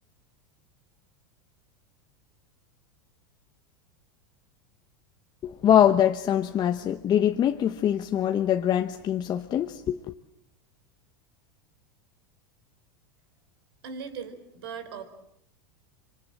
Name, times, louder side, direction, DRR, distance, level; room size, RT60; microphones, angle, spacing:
voice 1, 5.4-10.0, left 10 dB, 35° left, 1.1 m, -23 dB
voice 2, 13.8-15.0, right 6 dB, 75° right, 4.4 m, -38 dB
26.0 x 25.0 x 7.5 m
supercardioid pair, 115°, 13 cm